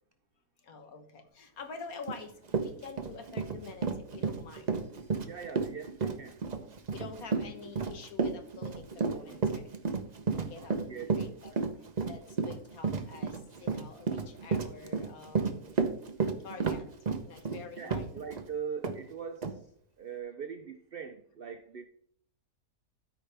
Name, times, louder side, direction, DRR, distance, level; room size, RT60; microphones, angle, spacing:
voice 1, 0.6-5.2 6.9-9.6 10.3-11.5 11.8-15.7 16.4-16.9 17.2-18.1 18.4-18.5, left 5 dB, 65° left, 5 dB, 1.6 m, -47 dB
Run, 2.1-2.2 2.5-18.5 18.8-19.0 19.4-19.5, right 5 dB, 40° right, 0.6 m, -32 dB
voice 2, 5.3-6.4 8.9-9.5 10.5-11.1 17.8-19.7 20.0-21.8, right 7 dB, 85° right, 8 dB, 0.5 m, -42 dB
13.0 x 4.9 x 3.4 m, 0.63 s
omnidirectional pair, 1.7 m